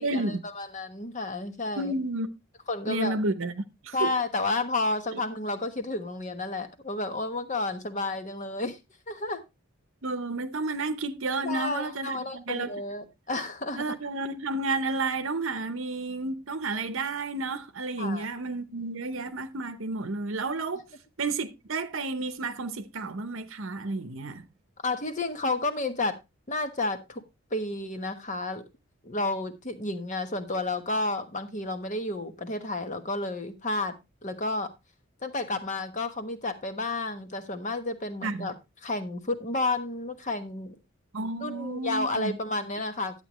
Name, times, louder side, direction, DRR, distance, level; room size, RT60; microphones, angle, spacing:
voice 1, 0.0-0.5 1.8-2.3 2.9-4.1 5.1-5.2 10.0-12.7 13.8-20.8 21.2-24.5 38.2-38.5 41.1-42.4, right 3 dB, 65° right, 0.8 m, -31 dB
voice 2, 0.6-1.9 2.7-3.2 3.9-8.8 9.1-9.4 11.4-13.8 18.0-18.2 24.8-26.2 26.5-27.2 27.5-28.6 29.0-33.9 34.2-34.7 35.2-38.5 38.8-40.8 41.4-43.3, left 2 dB, 35° left, 1.2 m, -31 dB
11.0 x 8.3 x 3.0 m
head